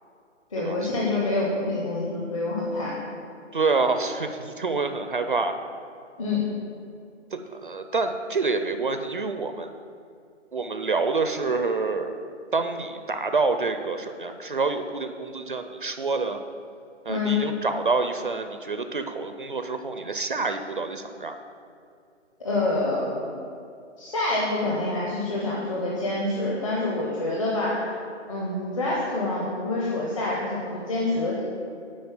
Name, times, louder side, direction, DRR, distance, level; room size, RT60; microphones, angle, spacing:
voice 1, 0.5-3.0 6.2-6.5 17.1-17.4 22.4-23.3 24.0-27.9 28.3-31.4, left 2 dB, 25° left, -5 dB, 0.9 m, -26 dB
voice 2, 3.5-5.6 7.3-9.7 10.5-12.3 12.5-16.4 17.1-21.3, right 3 dB, 45° right, 7 dB, 0.4 m, -27 dB
9.5 x 4.2 x 7.3 m, 2.5 s
hypercardioid pair, 165°, 37 cm